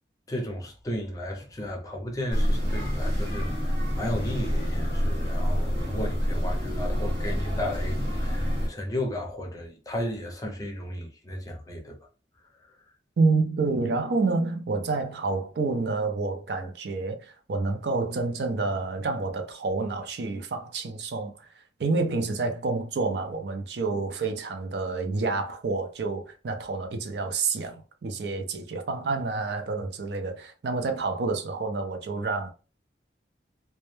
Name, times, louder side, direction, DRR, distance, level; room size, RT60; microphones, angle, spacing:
voice 1, 0.3-12.0, left 1 dB, 20° left, 0.4 m, -34 dB
sound 1, 2.3-8.7, equal, 80° right, 1.0 m, -27 dB
voice 2, 13.2-21.5 21.8-32.5, right 3 dB, 65° right, 0.4 m, -28 dB
2.2 x 2.1 x 3.0 m
head